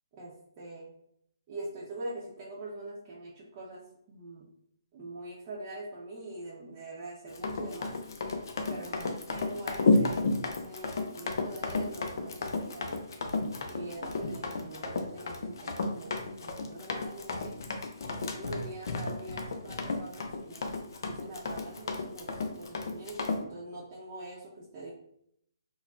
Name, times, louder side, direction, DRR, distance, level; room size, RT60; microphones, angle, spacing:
voice 1, 0.1-0.9 1.5-4.5 4.9-8.0 8.7-13.0 13.7-17.6 18.2-24.9, right 2 dB, 30° right, -7 dB, 0.6 m, -44 dB
Run, 7.3-23.4, left 3 dB, 60° left, 0.4 m, -32 dB
3.6 x 2.2 x 2.3 m, 0.72 s
hypercardioid pair, 145°, 2 cm